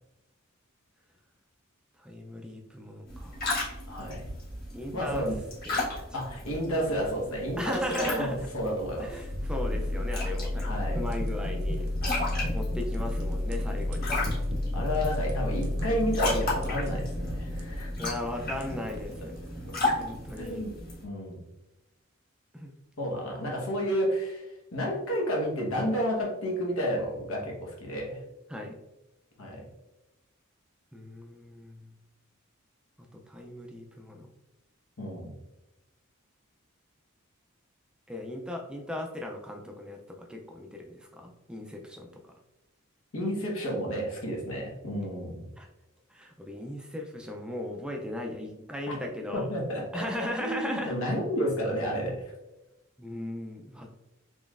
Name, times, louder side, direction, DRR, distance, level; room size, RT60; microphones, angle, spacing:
voice 1, 2.0-3.4 4.7-5.3 5.7-6.0 7.6-8.5 9.0-11.9 12.5-14.2 18.0-19.4 20.0-20.6 22.5-22.7 28.5-28.7 30.9-31.9 33.1-34.3 38.1-42.1 45.6-45.7 46.1-49.5 49.9-50.9 53.0-53.9, left 1 dB, 5° right, 2 dB, 0.3 m, -37 dB
sound 1, 3.1-21.0, left 2 dB, 45° left, 1.4 m, -36 dB
voice 2, 3.9-4.2 4.9-5.4 6.1-9.2 10.6-11.1 12.3-12.5 14.7-17.9 19.7-19.8 20.4-21.4 23.0-28.2 29.4-29.7 35.0-35.3 43.1-45.4 49.3-52.2, equal, 80° left, -2 dB, 1.1 m, -31 dB
sound 2, 9.0-21.0, left 1 dB, 40° right, 0.6 m, -32 dB
sound 3, 10.5-20.6, right 1 dB, 85° right, 0.7 m, -49 dB
3.9 x 3.1 x 2.4 m, 0.98 s
head